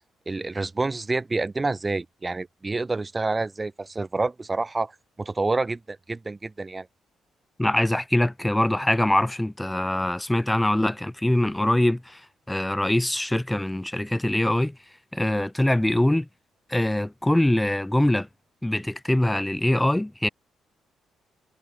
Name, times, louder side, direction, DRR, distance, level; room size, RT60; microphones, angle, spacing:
voice 1, 0.3-4.9 5.2-6.9, right 3 dB, 20° right, 0.6 m, -28 dB
voice 2, 7.6-12.2 12.5-14.8 15.1-16.3 16.7-18.3 18.6-20.3, left 1 dB, 10° left, 1.0 m, -23 dB
cardioid pair, 90°, 0 cm